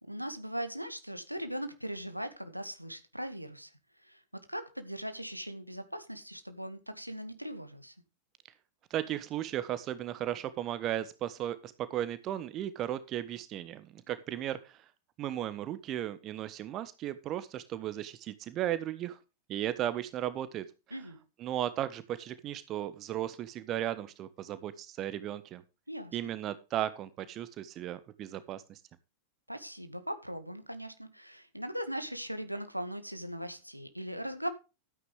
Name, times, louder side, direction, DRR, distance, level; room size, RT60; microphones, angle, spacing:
voice 1, 0.0-3.7 4.0-4.2 4.5-7.9 20.9-21.2 25.9-26.2 29.5-34.5, equal, 90° right, 1.9 m, -39 dB
voice 2, 8.9-14.8 15.2-19.2 19.5-20.6 21.4-25.6 26.1-28.8, right 12 dB, 35° right, 1.1 m, -35 dB
13.0 x 9.5 x 3.4 m
figure-of-eight pair, 90°, 0 cm